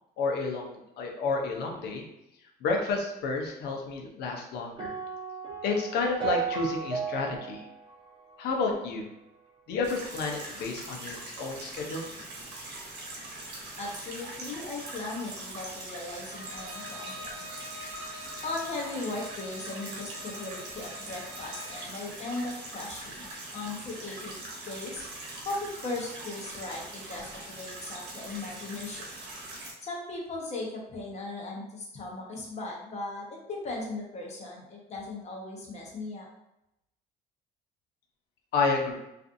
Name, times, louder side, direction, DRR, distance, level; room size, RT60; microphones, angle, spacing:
voice 1, 0.2-2.1 2.6-4.9 5.6-7.6 8.4-9.1 9.7-12.1 38.5-39.0, left 4 dB, 75° left, 1 dB, 0.6 m, -30 dB
sound 1, 4.8-9.1, right 6 dB, 30° right, 0.7 m, -35 dB
sound 2, 9.8-29.7, right 2 dB, 90° right, 0.9 m, -42 dB
voice 2, 13.8-17.6 18.4-23.3 23.5-25.0 25.4-29.1 29.8-36.3, left 2 dB, 40° left, -2 dB, 0.8 m, -38 dB
Bowed string instrument, 16.3-21.9, left 1 dB, 60° right, 0.8 m, -46 dB
2.5 x 2.4 x 2.5 m, 0.86 s
cardioid pair, 110°, 17 cm